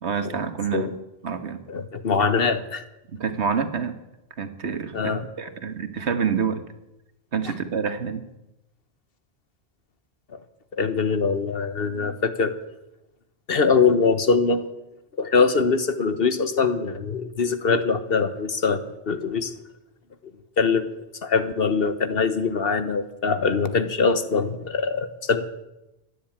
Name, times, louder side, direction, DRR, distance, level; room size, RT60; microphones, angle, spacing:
voice 1, 0.0-0.9 1.2-1.6 3.1-4.0 4.4-6.6 7.3-8.3, right 6 dB, 85° right, 9 dB, 1.7 m, -27 dB
voice 2, 1.7-2.8 4.9-5.2 10.7-12.6 13.5-14.6 15.2-19.5 20.6-20.9 21.2-25.4, left 5 dB, 60° left, 11 dB, 1.4 m, -23 dB
15.5 x 10.5 x 8.7 m, 0.96 s
omnidirectional pair, 1.1 m